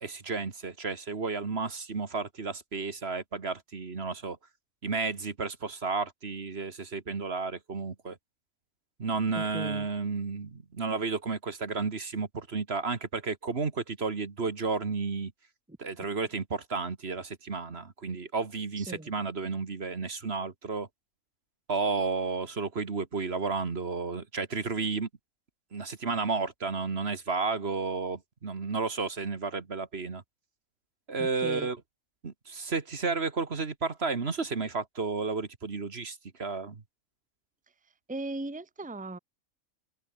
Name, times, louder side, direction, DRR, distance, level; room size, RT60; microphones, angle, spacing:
voice 1, 0.0-4.4 4.8-8.2 9.0-15.3 15.8-20.9 21.7-25.1 25.7-30.2 31.1-31.8 32.2-36.8, right 4 dB, 50° right, 1.9 m, -32 dB
voice 2, 9.3-9.9 15.7-15.8 18.8-19.1 31.2-31.7 38.1-39.2, right 2 dB, 5° right, 1.2 m, -38 dB
omnidirectional pair, 1.3 m